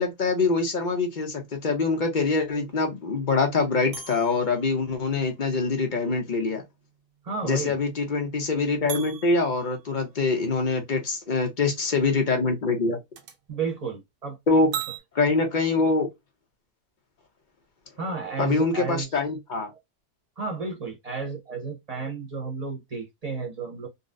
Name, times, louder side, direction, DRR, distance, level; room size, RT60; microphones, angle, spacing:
voice 1, 0.0-6.6 7.4-13.0 14.5-14.7 15.1-16.1 18.4-19.7, left 3 dB, 45° left, 0.6 m, -24 dB
sound 1, 3.9-7.3 7.6-7.7 8.9-10.6 13.2-13.4 14.7-15.0, right 9 dB, 75° right, 1.2 m, -40 dB
voice 2, 7.2-7.8 13.5-14.4 18.0-19.2 19.7-19.8 20.4-23.9, right 4 dB, 30° right, 0.8 m, -32 dB
3.9 x 2.0 x 2.4 m
omnidirectional pair, 1.6 m